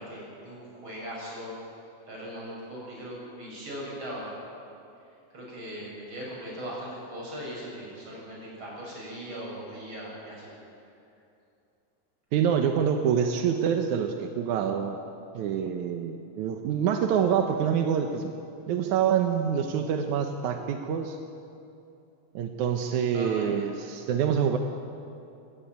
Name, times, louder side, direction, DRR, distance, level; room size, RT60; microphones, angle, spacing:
voice 1, 0.0-1.6 2.1-4.3 5.3-10.5 23.1-23.5, equal, 30° right, -4 dB, 7.7 m, -39 dB
voice 2, 12.3-15.0 15.3-18.3 18.7-21.2 22.3-24.6, right 8 dB, 70° right, 5 dB, 1.9 m, -26 dB
22.0 x 16.0 x 9.3 m, 2.7 s
omnidirectional pair, 4.5 m